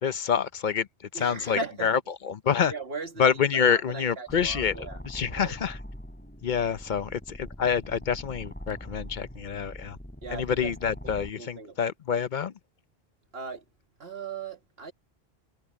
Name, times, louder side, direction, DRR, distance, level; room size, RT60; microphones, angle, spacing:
voice 1, 0.0-0.9 1.1-2.0 2.2-2.7 3.2-4.7 5.1-5.8 6.4-10.0 10.3-12.5, left 7 dB, 55° left, 0.7 m, -27 dB
voice 2, 1.1-1.9 2.7-5.0 5.3-5.6 10.2-10.7 11.0-11.8 13.3-13.6 14.0-14.9, right 4 dB, 75° right, 2.2 m, -38 dB
sound 1, 4.3-11.3, equal, 10° left, 4.0 m, -42 dB
omnidirectional pair, 1.0 m